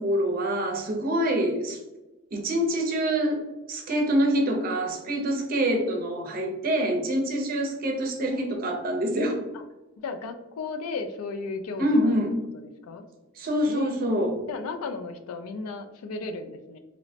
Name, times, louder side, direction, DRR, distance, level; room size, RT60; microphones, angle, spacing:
voice 1, 0.0-1.8 2.3-3.4 3.7-9.4 11.8-12.3 13.4-14.3, equal, 40° right, 1 dB, 0.5 m, -25 dB
voice 2, 8.3-8.6 10.0-12.2 12.5-13.0 13.6-13.9 14.5-16.8, left 4 dB, 80° left, 8 dB, 0.3 m, -35 dB
2.9 x 2.1 x 2.7 m, 1.0 s
head